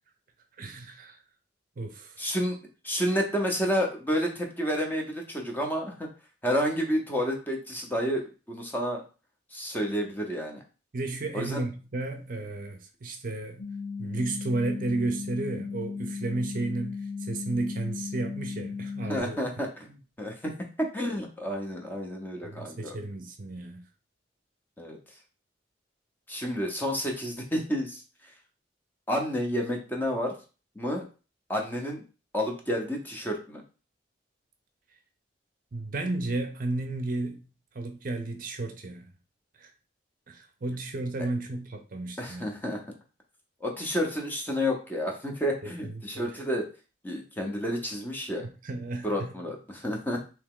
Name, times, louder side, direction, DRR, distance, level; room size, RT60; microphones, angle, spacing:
voice 1, 0.6-1.2 1.8-2.2 10.9-13.6 14.0-19.4 22.4-23.8 35.7-37.5 37.7-39.1 39.6-39.7 40.3-42.5 45.6-46.4 48.4-49.3, right 2 dB, 50° right, 0.6 m, -33 dB
voice 2, 2.2-2.6 2.8-6.1 6.4-9.0 9.5-10.6 11.3-11.6 19.1-20.5 20.8-23.0 24.8-25.0 26.3-28.0 29.1-30.3 30.8-31.1 31.5-32.0 32.3-33.6 42.2-42.8 43.6-46.7 47.0-48.5 49.0-50.2, equal, 10° left, 0.7 m, -30 dB
sound 1, 13.6-19.2, left 5 dB, 70° left, 0.6 m, -36 dB
3.4 x 2.9 x 3.7 m
head